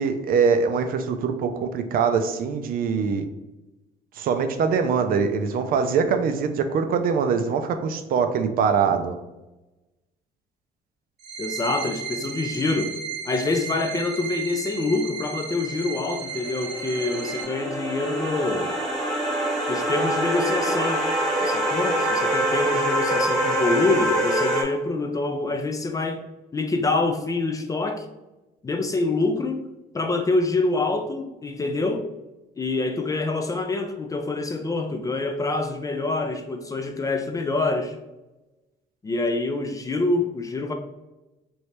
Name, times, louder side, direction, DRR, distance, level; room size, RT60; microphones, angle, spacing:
voice 1, 0.0-3.2 4.1-9.2, right 6 dB, 60° right, 7 dB, 0.4 m, -23 dB
sound 1, 11.2-17.4, right 6 dB, 85° right, 0.7 m, -34 dB
voice 2, 11.4-13.0 13.2-18.7 19.7-21.1 21.4-26.2 26.5-28.1 28.6-29.7 29.9-32.1 32.6-38.0 39.0-40.7, left 3 dB, 20° left, 6 dB, 0.4 m, -26 dB
sound 2, 16.2-24.6, right 1 dB, 5° left, 1.0 m, -25 dB
3.0 x 2.7 x 3.2 m, 1.0 s
cardioid pair, 110°, 17 cm